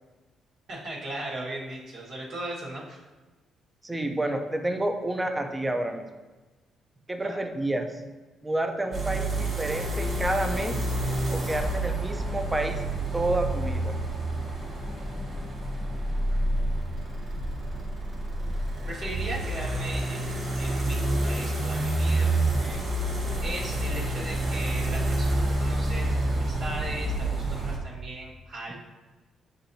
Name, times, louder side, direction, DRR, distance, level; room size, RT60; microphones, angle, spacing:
voice 1, 0.7-3.0 7.2-7.4 16.3-16.4 18.9-22.8 23.4-28.7, right 2 dB, 75° right, -6 dB, 1.4 m, -38 dB
voice 2, 3.8-6.1 7.1-8.0 8.4-10.8 11.3-12.8 13.1-14.0, right 1 dB, 15° right, 5 dB, 0.5 m, -29 dB
sound 1, 8.9-27.8, right 1 dB, 50° right, 1.2 m, -28 dB
7.4 x 2.6 x 2.7 m, 1.2 s
cardioid pair, 90°, 0 cm